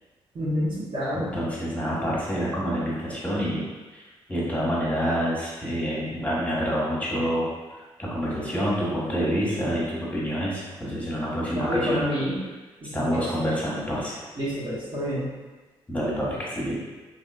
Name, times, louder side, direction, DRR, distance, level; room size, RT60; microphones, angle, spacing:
voice 1, 0.3-1.3 11.5-12.3 12.8-13.2 14.4-15.2, equal, 40° right, -9 dB, 1.1 m, -28 dB
voice 2, 1.1-3.6 3.9-4.0 4.3-7.5 8.0-12.0 12.9-14.2 15.9-16.8, equal, 10° left, -6 dB, 1.2 m, -27 dB
2.9 x 2.6 x 2.4 m, 1.3 s
hypercardioid pair, 45°, 12 cm